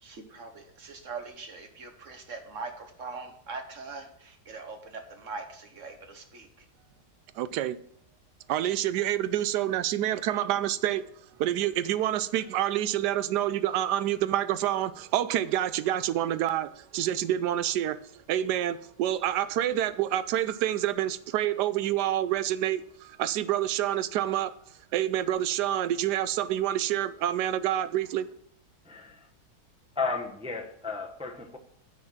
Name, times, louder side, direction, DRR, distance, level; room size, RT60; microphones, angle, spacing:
voice 1, 0.0-6.5, right 4 dB, 50° right, 1.4 m, -41 dB
voice 2, 7.4-7.8 8.5-11.1 11.4-18.0 18.3-24.5 24.9-28.3, right 12 dB, 80° right, 1.1 m, -27 dB
voice 3, 28.9-29.2 30.0-31.6, left 4 dB, 10° right, 0.3 m, -33 dB
9.5 x 4.5 x 7.2 m
omnidirectional pair, 1.8 m